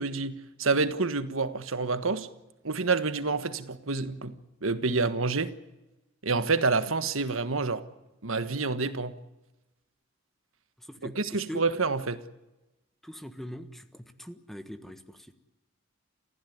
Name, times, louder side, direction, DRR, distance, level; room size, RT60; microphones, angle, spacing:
voice 1, 0.0-2.3 2.6-4.4 4.6-5.5 6.2-7.8 8.2-9.1 11.0-12.2, right 4 dB, 75° right, 1.5 m, -28 dB
voice 2, 10.8-11.6 13.0-15.3, equal, ahead, 1.4 m, -42 dB
29.0 x 16.0 x 9.5 m
head